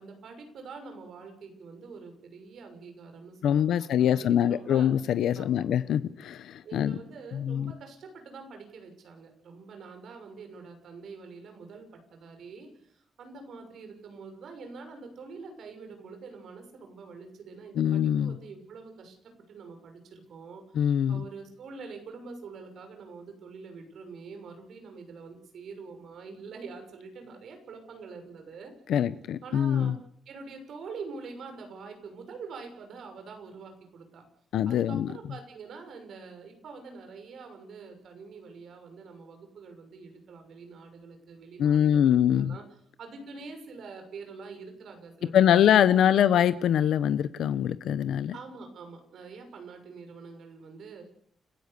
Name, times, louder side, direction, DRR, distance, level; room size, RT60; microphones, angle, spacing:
voice 1, 0.0-4.9 5.4-5.6 6.6-11.8 12.1-19.2 19.5-28.7 29.4-30.0 30.2-34.2 34.7-42.6 43.0-46.2 48.3-51.0, right 4 dB, 65° right, 5 dB, 6.4 m, -45 dB
voice 2, 3.4-7.0 7.3-7.7 17.8-18.4 20.7-21.2 28.9-30.0 34.5-35.1 41.6-42.5 45.3-48.3, left 9 dB, 85° left, 13 dB, 0.9 m, -24 dB
30.0 x 15.5 x 6.9 m, 0.66 s
wide cardioid pair, 155°, 0 cm